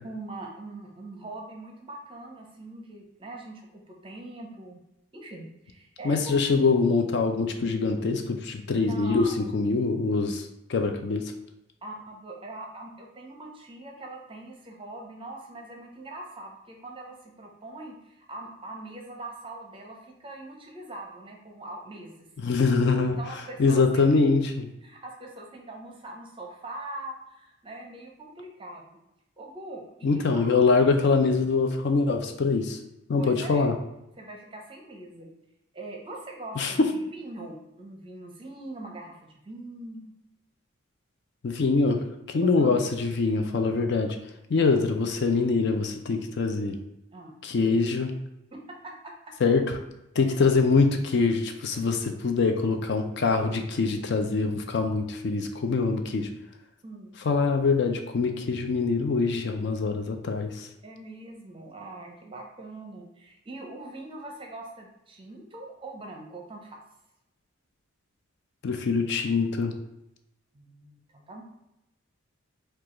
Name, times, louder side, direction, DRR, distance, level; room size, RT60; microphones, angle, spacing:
voice 1, 0.0-4.8 5.1-6.3 8.8-9.5 11.8-22.1 23.0-24.0 24.8-29.0 29.4-30.5 30.8-30.9 33.2-33.7 34.2-35.3 35.7-40.1 42.3-42.8 47.1-47.8 48.5-49.1 50.2-50.4 56.8-57.2 60.8-66.8 70.5-71.4, right 2 dB, 25° right, 1 dB, 0.6 m, -42 dB
voice 2, 6.0-11.3 22.4-23.2 23.6-24.7 30.0-32.8 33.1-33.7 36.6-36.9 41.4-44.2 44.5-46.8 47.4-48.1 49.4-49.8 50.2-56.3 57.2-60.7 68.6-69.7, left 4 dB, 50° left, 5 dB, 0.4 m, -24 dB
4.7 x 2.3 x 3.7 m, 0.89 s
head